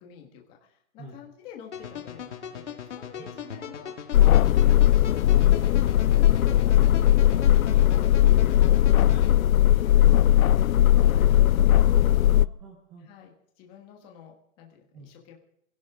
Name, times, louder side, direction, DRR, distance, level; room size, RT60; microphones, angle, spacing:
voice 1, 0.0-4.2 4.7-8.8 9.4-10.6 11.0-11.3 13.0-15.4, left 8 dB, 10° left, 1 dB, 1.5 m, -48 dB
sound 1, 1.7-9.3, left 7 dB, 55° left, 2.4 m, -39 dB
voice 2, 3.2-3.8 4.2-4.8 9.1-9.3 10.9-13.1 14.9-15.1, right 3 dB, 5° right, 0 dB, 0.8 m, -46 dB
sound 2, 4.1-12.5, left 12 dB, 70° left, 0.6 m, -19 dB
23.5 x 16.5 x 3.7 m, 0.72 s
hypercardioid pair, 175°, 43 cm